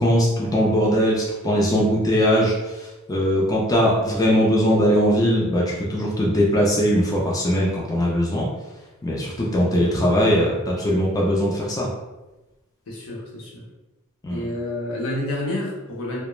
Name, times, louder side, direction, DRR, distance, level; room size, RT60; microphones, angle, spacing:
voice 1, 0.0-2.5 3.1-8.5 9.0-11.9 14.2-14.4, equal, 15° left, -4 dB, 0.4 m, -20 dB
voice 2, 12.9-13.6 14.3-16.2, left 1 dB, 80° left, -3 dB, 0.7 m, -29 dB
2.3 x 2.0 x 3.0 m, 1.0 s
head